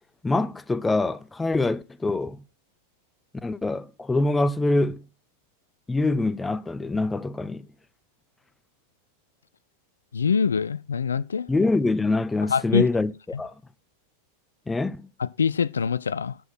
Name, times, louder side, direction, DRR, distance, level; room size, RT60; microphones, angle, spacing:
voice 1, 0.2-2.4 3.4-5.1 5.9-7.7 11.5-13.5 14.7-15.1, left 2 dB, 10° left, 0.5 m, -25 dB
voice 2, 10.1-11.5 12.5-12.9 15.2-16.4, left 6 dB, 70° left, 0.4 m, -24 dB
12.5 x 4.7 x 6.0 m
figure-of-eight pair, 90°, 0 cm